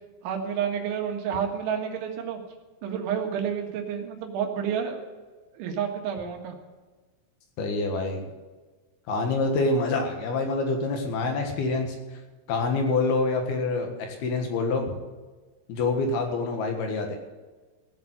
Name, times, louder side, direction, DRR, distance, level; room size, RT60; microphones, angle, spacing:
voice 1, 0.2-2.4 2.8-5.0 5.5-6.5, right 8 dB, 85° right, 3 dB, 4.2 m, -29 dB
voice 2, 7.6-8.2 9.1-12.0 12.5-15.0 15.7-17.2, left 3 dB, 65° left, 3 dB, 3.2 m, -26 dB
17.5 x 7.3 x 7.9 m, 1.3 s
omnidirectional pair, 5.3 m